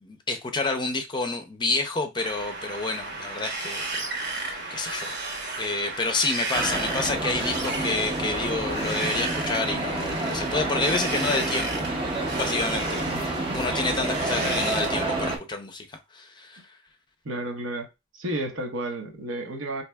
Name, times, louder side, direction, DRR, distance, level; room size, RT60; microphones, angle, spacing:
voice 1, 0.0-5.1 5.6-11.8 12.3-15.9 16.1-16.6, left 3 dB, 25° left, 0.5 m, -29 dB
Wind, 2.2-15.3, right 3 dB, 55° right, 1.0 m, -34 dB
sound 1, 6.5-15.4, right 2 dB, 25° right, 0.6 m, -29 dB
voice 2, 17.2-17.9 18.1-19.8, right 1 dB, 75° right, 0.9 m, -32 dB
4.4 x 2.7 x 2.2 m
head